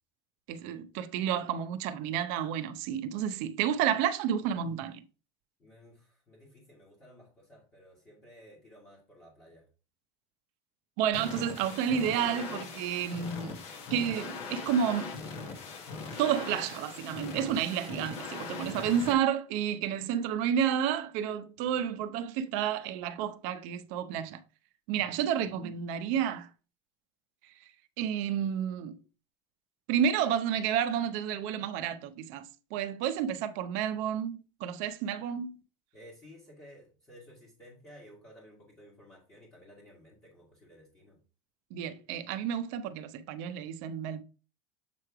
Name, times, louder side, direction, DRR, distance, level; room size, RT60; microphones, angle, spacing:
voice 1, 0.5-5.0 11.0-13.6 13.9-15.2 16.1-24.4 24.9-26.5 28.0-28.9 29.9-35.6 41.7-44.2, right 9 dB, 50° right, 0.7 m, -31 dB
voice 2, 5.6-9.7 21.7-21.8 35.9-41.2, equal, 20° left, 1.7 m, -55 dB
sound 1, 11.1-19.1, left 4 dB, 40° left, 1.2 m, -41 dB
7.6 x 3.2 x 4.8 m
cardioid pair, 170°, 16 cm